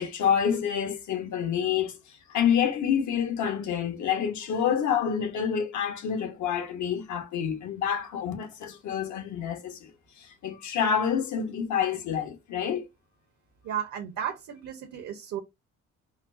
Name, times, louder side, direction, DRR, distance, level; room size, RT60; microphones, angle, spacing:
voice 1, 0.0-2.0 2.3-9.9 10.2-12.9, left 8 dB, 70° left, 0.8 m, -28 dB
voice 2, 13.6-15.4, right 9 dB, 65° right, 0.9 m, -34 dB
4.2 x 2.0 x 2.5 m
cardioid pair, 90°, 30 cm